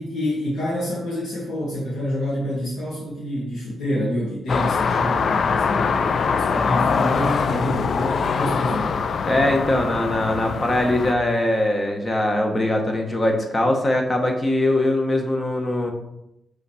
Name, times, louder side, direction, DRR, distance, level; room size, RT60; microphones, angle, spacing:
voice 1, 0.0-8.9, left 1 dB, 85° left, -9 dB, 2.1 m, -27 dB
sound 1, 4.5-11.1, left 5 dB, 55° left, 0.4 m, -23 dB
voice 2, 9.2-15.9, left 1 dB, 30° left, 3 dB, 1.2 m, -21 dB
5.6 x 4.0 x 4.9 m, 0.87 s
cardioid pair, 110°, 0 cm